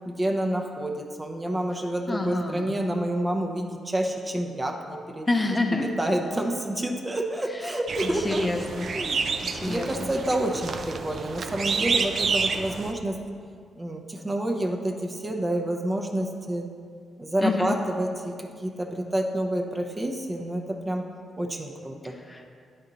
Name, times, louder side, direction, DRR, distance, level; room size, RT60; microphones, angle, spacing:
voice 1, 0.1-5.3 5.7-8.5 8.9-13.2 13.8-16.7 17.2-21.1 21.4-22.1, right 1 dB, 20° right, 2 dB, 0.7 m, -29 dB
voice 2, 2.1-2.7 5.3-5.9 7.5-7.7 8.0-8.9 9.5-10.1 17.4-17.8 22.0-22.4, left 2 dB, 20° left, 3 dB, 0.7 m, -28 dB
sound 1, 7.9-12.9, right 5 dB, 55° right, 0.4 m, -29 dB
9.6 x 4.3 x 3.9 m, 2.2 s
cardioid pair, 80°, 0 cm